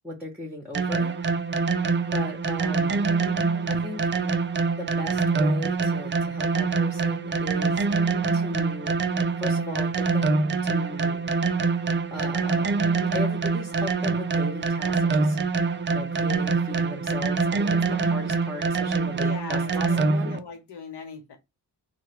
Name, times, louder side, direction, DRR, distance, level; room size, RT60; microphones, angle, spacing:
voice 1, 0.0-1.1 2.1-3.1 3.7-4.0 4.7-7.8 8.3-8.9 9.4-11.2 12.1-12.7 13.1-15.4 15.9-20.4, left 1 dB, 5° right, 0.8 m, -37 dB
sound 1, 0.7-20.4, right 4 dB, 30° right, 0.4 m, -25 dB
voice 2, 19.0-21.4, left 6 dB, 65° left, 1.2 m, -40 dB
3.1 x 2.2 x 3.0 m
cardioid pair, 95°, 42 cm